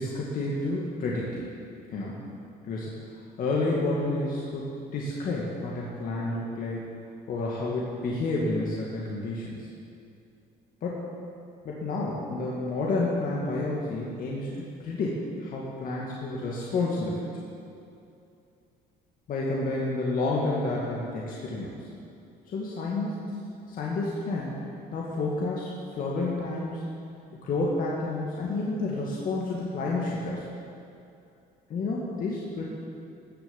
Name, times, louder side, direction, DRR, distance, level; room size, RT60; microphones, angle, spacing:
voice 1, 0.0-1.4 1.9-2.2 2.6-2.9 3.4-6.8 7.3-9.7 10.8-11.1 11.6-17.3 19.3-21.9 22.5-23.4 23.7-24.5 24.9-26.8 27.4-30.5 31.7-32.7, left 2 dB, 55° left, -4 dB, 2.1 m, -30 dB
17.0 x 6.9 x 7.2 m, 2.6 s
cardioid pair, 110°, 17 cm